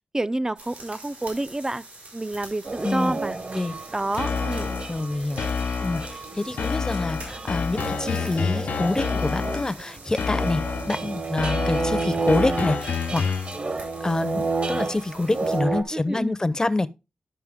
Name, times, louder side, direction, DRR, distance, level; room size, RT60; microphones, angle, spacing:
voice 1, 0.1-1.8 2.1-3.4 3.9-4.7 15.9-16.4, right 2 dB, 25° right, 0.5 m, -28 dB
sound 1, 0.6-15.6, right 2 dB, 90° right, 4.7 m, -45 dB
sound 2, 2.6-15.8, right 3 dB, 50° right, 1.2 m, -31 dB
voice 2, 2.8-3.2 3.5-3.7 4.9-5.4 5.8-13.2 14.0-16.9, left 2 dB, 25° left, 0.6 m, -26 dB
sound 3, 4.2-5.0 5.4-6.2 6.6-9.8 10.2-11.0 11.4-13.6, left 6 dB, 85° left, 0.5 m, -28 dB
11.0 x 5.4 x 3.6 m
cardioid pair, 55°, 3 cm